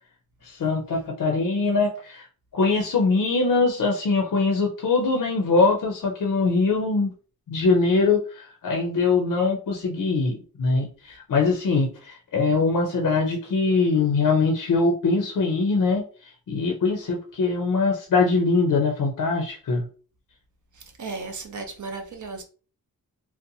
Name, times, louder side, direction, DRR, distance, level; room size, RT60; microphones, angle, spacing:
voice 1, 0.4-2.3 2.5-7.1 7.5-16.1 16.5-19.8, left 4 dB, 60° left, 0.5 m, -22 dB
voice 2, 21.0-22.4, right 3 dB, 55° right, 0.5 m, -34 dB
2.6 x 2.1 x 2.7 m
wide cardioid pair, 130°, 37 cm